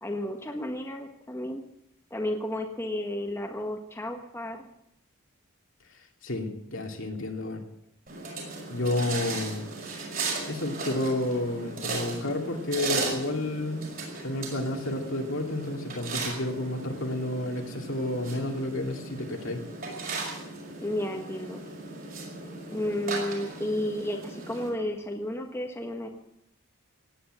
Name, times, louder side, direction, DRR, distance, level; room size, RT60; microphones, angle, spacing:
voice 1, 0.0-1.6 2.1-4.6 20.8-21.6 22.7-26.1, left 1 dB, 10° left, 2 dB, 1.5 m, -32 dB
voice 2, 6.2-7.6 8.7-9.6 10.5-13.9 14.2-19.6, left 1 dB, 65° left, 2 dB, 2.6 m, -31 dB
sound 1, 8.1-24.7, right 3 dB, 45° right, 5.6 m, -37 dB
17.5 x 10.0 x 8.0 m, 0.76 s
head